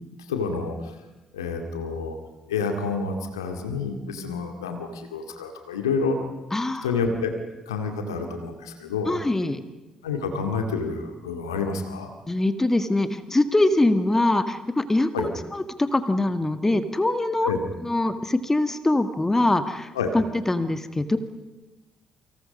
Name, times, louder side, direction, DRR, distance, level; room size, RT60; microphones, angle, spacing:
voice 1, 0.3-0.9 1.3-2.2 2.5-6.2 6.8-7.3 7.7-9.2 10.0-12.1 15.1-15.3 17.4-17.6 19.9-20.1, left 4 dB, 80° left, 4 dB, 2.4 m, -28 dB
voice 2, 6.5-6.9 9.1-9.6 12.3-17.5 17.8-21.2, left 2 dB, 15° left, 9 dB, 1.8 m, -23 dB
29.0 x 25.5 x 5.5 m, 1.1 s
figure-of-eight pair, 40°, 2 cm